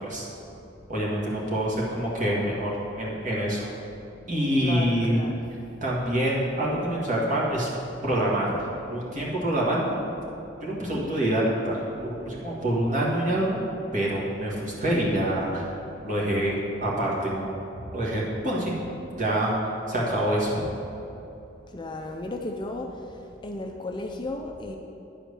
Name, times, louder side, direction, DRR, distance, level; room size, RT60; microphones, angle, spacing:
voice 1, 0.9-3.7 4.3-5.2 5.8-7.7 8.0-10.0 10.6-13.6 13.9-15.7 16.0-16.6 16.8-18.7 19.2-20.6, right 1 dB, 40° right, -4 dB, 1.8 m, -26 dB
voice 2, 4.6-5.4 21.7-22.9 23.4-24.8, left 2 dB, 25° left, 2 dB, 0.5 m, -34 dB
9.9 x 4.5 x 6.9 m, 2.9 s
head